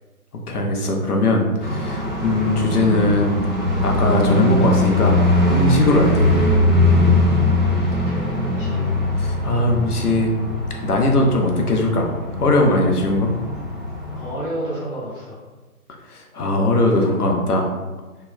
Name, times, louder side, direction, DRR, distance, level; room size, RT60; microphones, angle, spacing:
voice 1, 0.5-3.4 3.8-5.2 5.5-6.3 9.2-10.3 10.8-12.1 12.4-13.3 16.1-17.7, left 2 dB, 75° left, 1 dB, 1.0 m, -19 dB
sound 1, 1.6-14.3, left 1 dB, ahead, 0.6 m, -21 dB
voice 2, 7.8-8.9 14.1-15.4, right 1 dB, 35° left, -8 dB, 1.3 m, -31 dB
4.3 x 3.2 x 2.2 m, 1.2 s
figure-of-eight pair, 145°, 45 cm